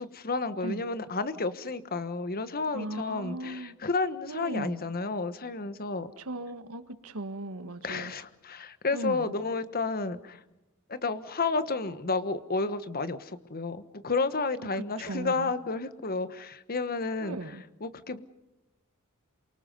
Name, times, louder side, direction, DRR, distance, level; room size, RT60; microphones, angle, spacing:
voice 1, 0.0-6.1 7.8-10.4 10.9-17.4 17.8-18.2, left 3 dB, 45° left, 12 dB, 1.3 m, -31 dB
voice 2, 2.7-3.8 4.3-4.8 6.2-8.1 8.9-9.3 15.0-15.5 17.2-17.6, right 1 dB, 80° right, 10 dB, 1.7 m, -37 dB
28.0 x 24.5 x 5.5 m, 0.95 s
head